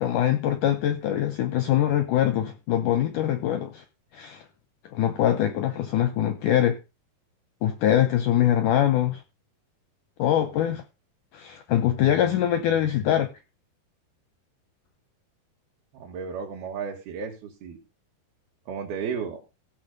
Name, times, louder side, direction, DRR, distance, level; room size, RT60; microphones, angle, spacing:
voice 1, 0.0-3.8 4.1-4.4 4.9-6.8 7.6-9.2 10.2-10.8 11.3-13.3, left 11 dB, 80° left, 1.8 m, -23 dB
voice 2, 15.9-17.8 18.7-19.4, right 6 dB, 75° right, 3.4 m, -33 dB
16.0 x 6.1 x 5.3 m
omnidirectional pair, 4.6 m